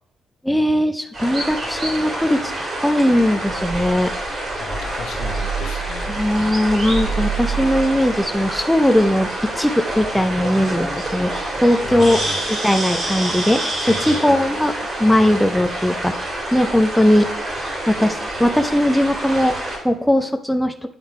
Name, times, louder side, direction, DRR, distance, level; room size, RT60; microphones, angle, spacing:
voice 1, 0.4-4.1 6.1-9.3 9.6-11.3 11.6-12.2 12.5-13.6 13.9-14.7 15.0-17.3 17.9-19.5 19.8-20.7, left 1 dB, ahead, 6 dB, 0.4 m, -19 dB
sound 1, 1.1-19.8, right 2 dB, 35° right, 2.1 m, -26 dB
voice 2, 4.6-6.5 11.8-12.4 13.8-14.4, left 5 dB, 75° left, 5 dB, 1.0 m, -35 dB
8.9 x 3.7 x 4.7 m, 0.71 s
cardioid pair, 145°, 0 cm